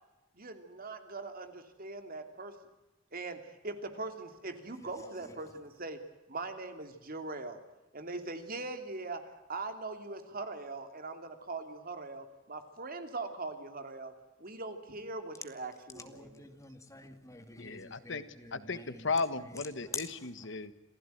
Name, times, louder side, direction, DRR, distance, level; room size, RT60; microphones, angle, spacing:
voice 1, 0.3-2.6 3.1-6.0 6.3-7.6 7.9-14.1 14.4-16.5, right 3 dB, 45° right, 2.8 m, -41 dB
voice 2, 16.2-18.2, left 1 dB, 15° left, 2.4 m, -52 dB
voice 3, 17.6-18.2 18.7-18.8 19.0-20.7, left 4 dB, 65° left, 1.4 m, -35 dB
27.5 x 16.0 x 9.2 m
head